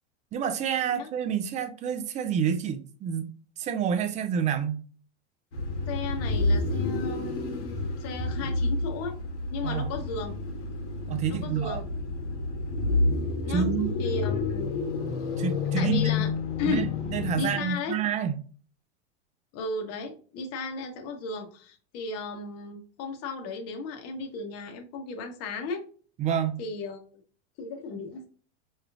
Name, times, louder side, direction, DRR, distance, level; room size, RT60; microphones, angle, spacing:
voice 1, 0.3-4.8 9.6-9.9 11.1-11.8 13.5-13.9 15.4-16.0 16.6-18.4 26.2-26.6, right 8 dB, 20° right, 0.3 m, -28 dB
sound 1, 5.5-17.7, left 3 dB, 90° left, 1.3 m, -29 dB
voice 2, 5.9-9.2 9.5-10.4 11.3-11.9 13.4-13.7 14.0-14.7 15.8-16.3 16.6-16.9 17.3-17.9 19.5-25.8 26.6-27.0 27.6-28.3, left 4 dB, 45° left, 1.0 m, -35 dB
4.7 x 3.2 x 2.4 m
hypercardioid pair, 115°, 35 cm